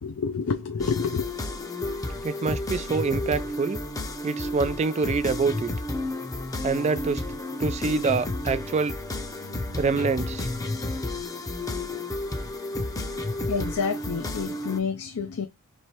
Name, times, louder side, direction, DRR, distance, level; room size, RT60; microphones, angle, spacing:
voice 1, 0.0-1.3 13.5-15.5, left 5 dB, 70° left, 0.5 m, -28 dB
sound 1, 0.8-14.8, left 2 dB, 15° left, 0.6 m, -31 dB
voice 2, 2.2-3.8 4.2-5.7 6.6-7.2 7.6-9.0 9.8-10.5, right 4 dB, 30° right, 0.3 m, -26 dB
3.3 x 3.1 x 4.3 m
head